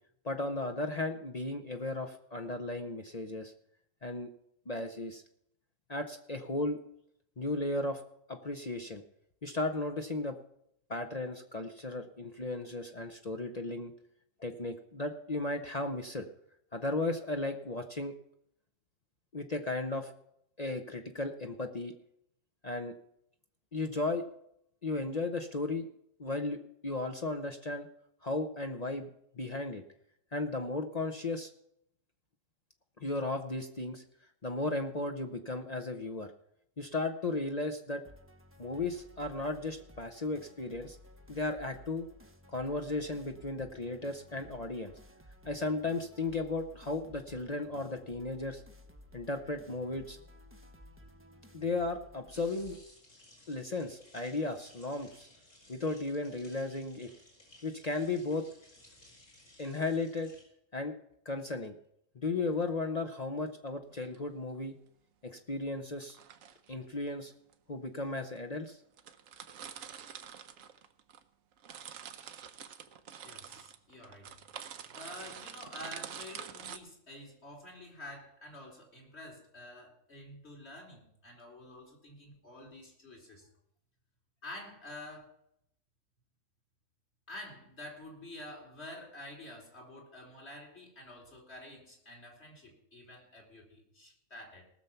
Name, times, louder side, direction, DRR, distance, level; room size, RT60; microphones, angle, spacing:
voice 1, 0.2-3.5 4.0-4.3 4.7-5.2 5.9-6.8 7.4-8.0 8.3-9.0 9.4-10.4 10.9-13.9 14.4-16.3 16.7-18.1 19.3-20.1 20.6-21.9 22.6-22.9 23.7-24.2 24.8-25.9 26.2-27.9 28.2-29.1 29.3-29.8 30.3-31.5 33.0-34.0 34.4-36.3 36.8-38.0 38.6-41.0 41.3-42.1 42.5-44.9 45.4-48.6 49.1-50.2 51.5-52.8 53.5-55.3 55.7-57.1 57.6-58.5 59.6-60.3 60.7-61.0 61.3-61.7 62.2-64.7 65.2-66.2 66.7-67.3 67.7-68.8, left 2 dB, 35° left, 5 dB, 0.8 m, -35 dB
sound 1, 38.0-52.8, left 1 dB, 10° right, 0.8 m, -56 dB
sound 2, 52.3-60.4, left 1 dB, 70° left, 4.3 m, -59 dB
sound 3, 63.9-64.2 66.0-66.7 67.5-67.6 68.4-68.5 68.7-68.8 69.0-71.2 71.5-76.8, right 8 dB, 85° right, 1.2 m, -46 dB
voice 2, 73.2-74.3 74.9-83.5 84.4-85.4 87.3-94.7, left 1 dB, 55° left, -1 dB, 3.4 m, -49 dB
18.5 x 6.8 x 5.7 m, 0.74 s
omnidirectional pair, 1.3 m